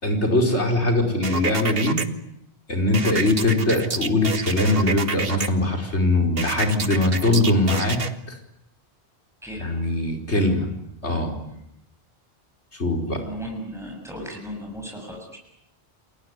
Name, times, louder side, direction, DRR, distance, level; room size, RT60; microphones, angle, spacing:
voice 1, 0.0-2.0 2.7-8.0 8.3-8.4 9.6-10.7 11.0-11.4 12.7-13.3, left 2 dB, 85° left, 3 dB, 5.0 m, -21 dB
sound 1, 1.2-2.1 2.9-5.5 6.4-8.1, right 4 dB, 60° right, 1.7 m, -28 dB
voice 2, 9.4-9.8 11.5-11.6 13.2-15.4, equal, ahead, 0 dB, 7.0 m, -36 dB
29.0 x 21.0 x 9.8 m, 0.81 s
omnidirectional pair, 1.1 m